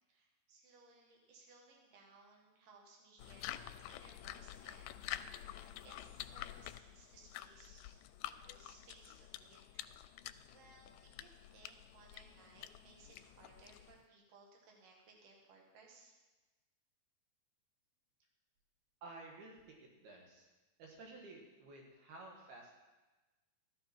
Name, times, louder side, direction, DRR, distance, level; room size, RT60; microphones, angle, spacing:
voice 1, 0.1-9.9 10.2-16.2, right 3 dB, 60° right, 0 dB, 3.5 m, -63 dB
sound 1, 3.2-14.1, left 13 dB, 80° left, 2.2 m, -49 dB
voice 2, 19.0-20.5 20.8-22.7, right 2 dB, 80° right, 0 dB, 3.6 m, -53 dB
15.5 x 12.5 x 4.5 m, 1.2 s
omnidirectional pair, 4.4 m